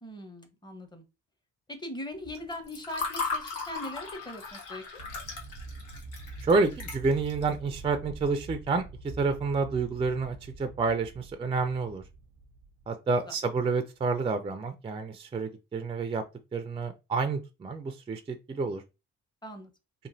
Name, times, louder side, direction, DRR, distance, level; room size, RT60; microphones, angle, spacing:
voice 1, 0.0-1.0 1.7-4.8 13.3-13.4 19.4-19.7, left 1 dB, 15° left, 0.7 m, -40 dB
Water / Fill (with liquid), 2.4-7.5, left 4 dB, 85° left, 1.0 m, -37 dB
sound 1, 5.0-12.9, right 3 dB, 85° right, 0.6 m, -45 dB
voice 2, 6.4-8.8 9.2-12.0 12.9-16.2 16.5-18.8, right 4 dB, 20° right, 0.3 m, -29 dB
3.0 x 2.1 x 2.6 m
cardioid pair, 90°, 30 cm